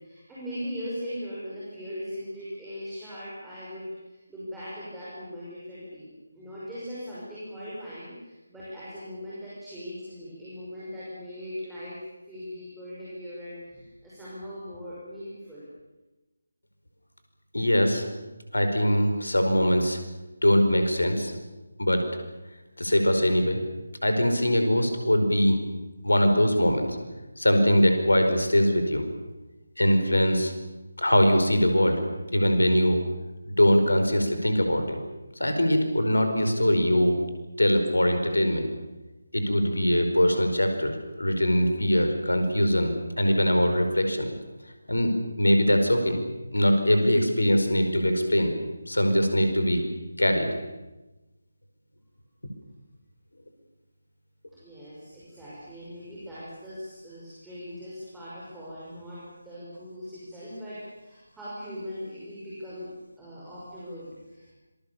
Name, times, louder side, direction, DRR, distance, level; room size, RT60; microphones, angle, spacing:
voice 1, 0.0-6.1 6.3-15.6 54.6-62.9 63.2-64.5, equal, 5° right, -10 dB, 5.8 m, -39 dB
voice 2, 17.5-18.1 18.5-20.0 20.4-21.3 21.8-22.0 22.8-23.6 24.0-25.6 26.0-27.0 27.4-29.0 29.8-30.5 31.0-32.0 32.3-33.0 33.5-35.0 35.4-37.2 37.6-38.7 39.3-44.3 44.9-45.1 45.4-46.2 46.5-48.5 48.9-49.8 50.2-50.5, equal, 75° left, 6 dB, 5.0 m, -22 dB
26.5 x 21.5 x 7.2 m, 1.1 s
figure-of-eight pair, 155°, 0 cm